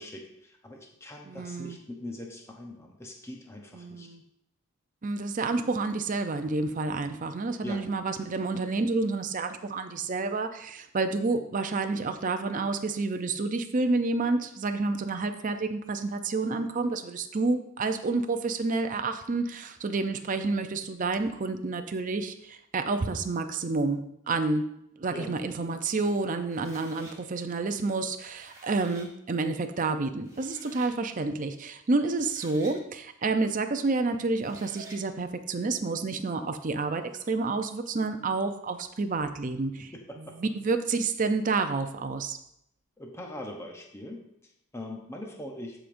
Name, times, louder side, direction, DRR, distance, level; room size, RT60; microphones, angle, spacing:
voice 1, 0.0-4.1 7.6-7.9 25.1-25.4 39.8-40.3 43.0-45.8, left 1 dB, 10° left, 1 dB, 0.8 m, -42 dB
voice 2, 1.3-1.8 3.7-4.2 5.0-24.6 25.0-42.4, right 3 dB, 35° right, 8 dB, 0.5 m, -29 dB
sound 1, 26.5-27.1 28.2-29.1 29.9-30.0 30.2-30.9 32.0-32.8 34.3-35.0, right 2 dB, 15° right, 3.0 m, -50 dB
14.5 x 5.0 x 2.6 m, 0.78 s
head